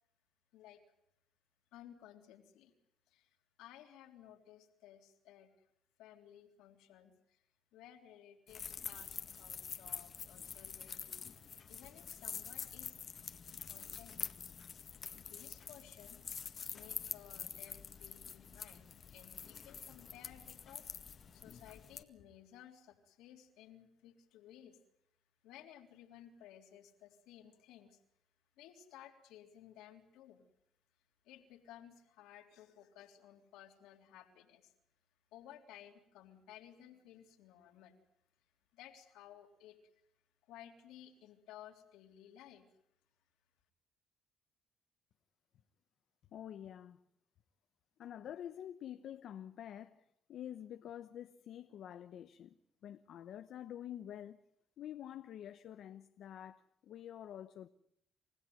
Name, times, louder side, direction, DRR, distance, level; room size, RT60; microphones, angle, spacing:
voice 1, 1.7-2.7 3.1-3.3 3.6-5.5 6.0-7.4 7.7-11.2 11.7-13.0 13.7-14.3 15.1-20.9 21.3-24.8 25.4-28.0 28.6-30.5 31.3-34.7 35.3-38.0 38.7-39.8 40.5-42.6, left 11 dB, 85° left, 3.5 m, -57 dB
sound 1, 8.5-22.0, left 7 dB, 50° left, 1.8 m, -46 dB
voice 2, 46.3-47.0 48.0-52.5 52.8-54.4 54.8-57.7, left 10 dB, 70° left, 1.0 m, -48 dB
29.5 x 15.5 x 9.4 m
supercardioid pair, 70°, 0 cm